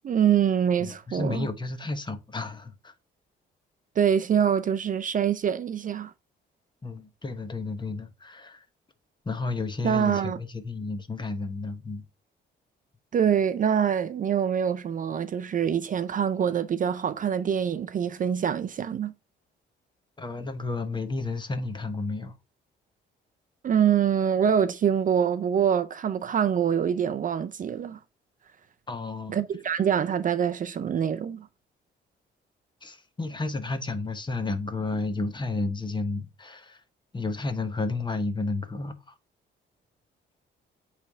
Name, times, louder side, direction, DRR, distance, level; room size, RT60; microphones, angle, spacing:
voice 1, 0.0-1.5 4.0-6.1 9.8-10.4 13.1-19.1 23.6-28.0 29.3-31.5, right 8 dB, 40° right, 0.5 m, -25 dB
voice 2, 0.8-2.9 6.8-8.6 9.2-12.0 20.2-22.3 28.9-29.4 32.8-36.8 37.1-39.1, left 3 dB, 25° left, 1.1 m, -32 dB
8.1 x 3.3 x 3.5 m
cardioid pair, 90°, 20 cm